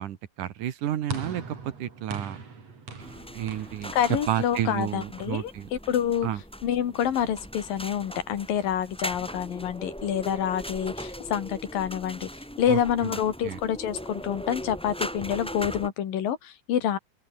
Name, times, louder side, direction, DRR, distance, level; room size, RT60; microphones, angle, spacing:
voice 1, 0.0-2.4 3.3-3.9 4.3-5.7 6.2-6.4 12.7-13.1 13.4-13.6, right 11 dB, 65° right, 2.8 m, -31 dB
sound 1, 1.1-5.5, right 4 dB, 45° right, 5.3 m, -41 dB
sound 2, 3.0-15.9, equal, ahead, 4.7 m, -39 dB
voice 2, 3.9-6.3 6.6-12.3 12.6-17.0, left 9 dB, 75° left, 3.8 m, -27 dB
open air
omnidirectional pair, 4.1 m